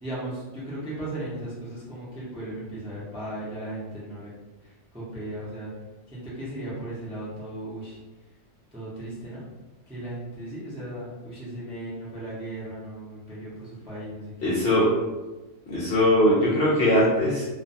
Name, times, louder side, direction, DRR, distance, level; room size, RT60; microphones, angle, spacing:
voice 1, 0.0-4.3 4.6-5.7 6.1-8.0 8.7-9.4 9.9-14.5, right 1 dB, 5° right, -9 dB, 0.5 m, -36 dB
voice 2, 14.4-14.8 15.7-17.4, left 1 dB, 60° left, -7 dB, 0.7 m, -21 dB
2.5 x 2.2 x 2.6 m, 1.2 s
omnidirectional pair, 1.4 m